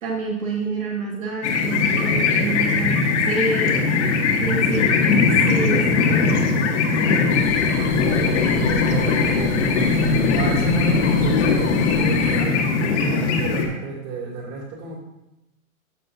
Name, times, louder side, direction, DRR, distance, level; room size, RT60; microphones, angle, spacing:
voice 1, 0.0-3.8 4.4-4.9 5.5-6.5, right 3 dB, 70° right, -1 dB, 1.6 m, -28 dB
sound 1, 1.4-13.7, left 4 dB, 55° left, 1.5 m, -20 dB
sound 2, 7.3-12.4, left 3 dB, 15° left, 1.1 m, -34 dB
voice 2, 8.1-10.0 10.3-15.0, right 3 dB, 35° right, -2 dB, 2.7 m, -31 dB
13.0 x 6.0 x 2.7 m, 0.91 s
hypercardioid pair, 130°, 43 cm